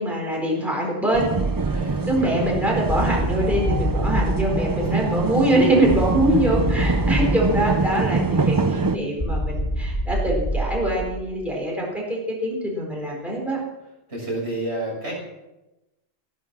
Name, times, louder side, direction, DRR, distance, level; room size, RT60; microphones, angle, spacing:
voice 1, 0.0-1.3 2.1-13.6, right 1 dB, ahead, -3 dB, 4.3 m, -23 dB
sound 1, 1.1-9.0, right 4 dB, 30° right, 0.4 m, -24 dB
voice 2, 1.7-2.3 3.8-4.0 4.8-5.0 6.2-6.9 14.1-15.2, right 1 dB, 65° right, -4 dB, 6.9 m, -32 dB
sound 2, 2.9-5.2 5.9-8.2 9.2-11.5, equal, 30° left, 6.5 m, -26 dB
16.5 x 11.5 x 6.2 m, 0.98 s
omnidirectional pair, 1.2 m